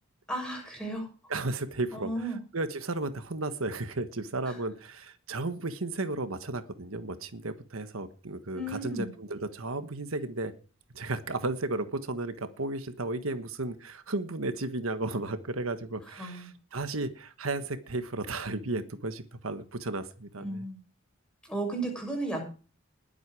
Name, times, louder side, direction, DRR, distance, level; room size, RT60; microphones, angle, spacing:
voice 1, 0.3-1.1 1.9-2.4 4.4-4.6 8.5-9.1 16.2-16.5 20.4-20.8 21.4-22.4, right 2 dB, 5° left, 1 dB, 6.8 m, -34 dB
voice 2, 1.3-10.5 10.9-20.6, right 2 dB, 75° right, 10 dB, 1.4 m, -34 dB
20.5 x 8.2 x 4.8 m, 0.37 s
head